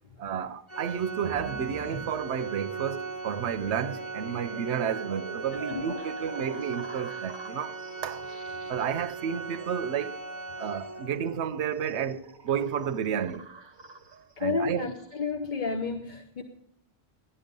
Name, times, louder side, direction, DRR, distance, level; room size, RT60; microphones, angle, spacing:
voice 1, 0.2-7.8 8.0-8.3 8.7-10.2 10.6-13.5 14.4-14.9, right 8 dB, 80° right, 1.0 m, -31 dB
Organ, 0.7-11.4, right 4 dB, 15° left, 1.7 m, -38 dB
sound 1, 1.2-15.3, right 4 dB, 25° right, 0.8 m, -47 dB
voice 2, 5.5-5.8 14.4-16.4, left 4 dB, 45° left, 0.9 m, -31 dB
16.5 x 12.0 x 5.3 m
omnidirectional pair, 1.1 m